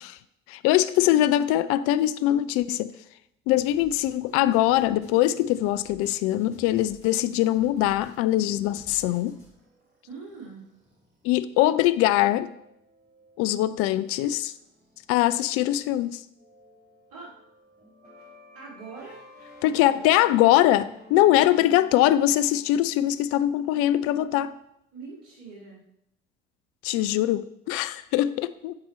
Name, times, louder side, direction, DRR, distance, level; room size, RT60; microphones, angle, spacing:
voice 1, 0.5-2.9 3.5-9.4 11.2-12.5 13.4-14.5 15.1-16.2 19.6-24.6 26.8-28.7, left 13 dB, 50° left, 0.4 m, -22 dB
sound 1, 3.5-9.5, left 1 dB, 75° left, 2.8 m, -53 dB
sound 2, 8.9-16.1 16.3-22.8, left 1 dB, 35° right, 2.6 m, -53 dB
voice 2, 10.0-10.7 17.1-17.4 18.5-19.2 24.9-25.8, right 4 dB, 65° right, 2.7 m, -42 dB
10.5 x 4.3 x 4.3 m
figure-of-eight pair, 55°, 29 cm